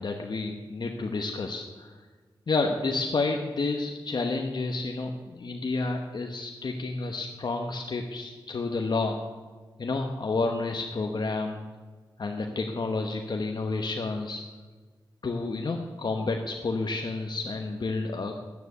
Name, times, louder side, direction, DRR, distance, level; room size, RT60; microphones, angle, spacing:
voice 1, 0.0-1.9 2.5-9.2 9.8-11.6 12.2-14.4 15.2-18.3, left 3 dB, 55° left, 3 dB, 1.0 m, -30 dB
10.5 x 9.7 x 8.2 m, 1.4 s
wide cardioid pair, 95°, 9 cm